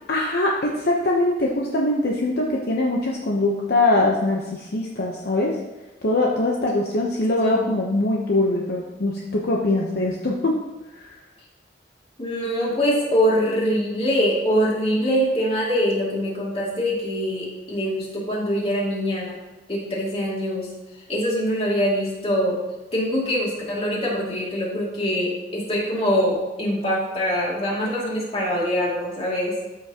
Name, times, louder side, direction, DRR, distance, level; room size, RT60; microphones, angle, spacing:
voice 1, 0.1-5.5 6.0-10.5 10.9-11.0, left 2 dB, 60° left, -2 dB, 0.9 m, -22 dB
voice 2, 7.5-7.9 12.2-19.4 19.7-20.7 21.1-22.6 22.9-29.6, equal, 30° left, -4 dB, 2.4 m, -23 dB
13.0 x 5.9 x 2.9 m, 1.1 s
head